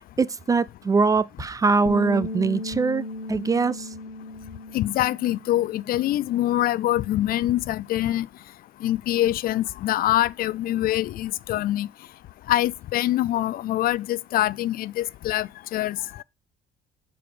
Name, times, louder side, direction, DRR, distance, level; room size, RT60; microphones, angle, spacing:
voice 1, 0.2-3.9, right 4 dB, 20° right, 0.3 m, -22 dB
Bass guitar, 1.9-6.2 6.5-8.1, left 2 dB, 90° left, 1.4 m, -37 dB
voice 2, 4.7-8.3 8.8-11.9 12.5-16.0, left 14 dB, 60° left, 0.4 m, -24 dB
6.9 x 4.9 x 5.0 m
cardioid pair, 110°, 17 cm